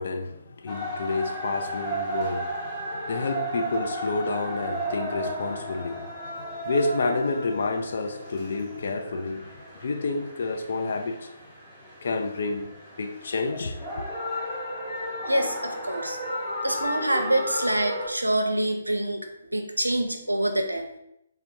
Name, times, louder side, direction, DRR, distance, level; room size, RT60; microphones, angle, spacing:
voice 1, 0.0-9.5 9.8-11.3 12.0-12.7 13.0-14.1, left 3 dB, 55° left, 0.4 m, -29 dB
sound 1, 0.7-18.1, equal, 20° left, 0.9 m, -34 dB
voice 2, 15.3-16.2 16.6-19.3 19.5-20.9, right 1 dB, 85° right, 0.5 m, -26 dB
3.3 x 2.2 x 2.7 m
figure-of-eight pair, 135°, 0 cm